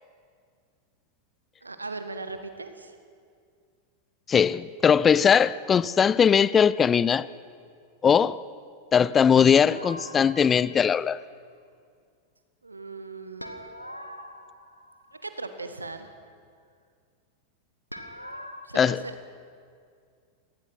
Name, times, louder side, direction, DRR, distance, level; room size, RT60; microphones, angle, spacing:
voice 1, 1.6-3.0 12.6-13.5 15.1-16.1 18.6-19.4, right 3 dB, 80° right, 1.6 m, -38 dB
voice 2, 4.3-7.3 8.0-8.4 8.9-11.2 18.8-19.0, left 7 dB, 20° left, 0.4 m, -20 dB
sound 1, 9.4-10.7 13.4-15.3 17.9-18.7, equal, 90° left, 1.5 m, -42 dB
27.5 x 19.0 x 6.1 m
figure-of-eight pair, 90°, 0 cm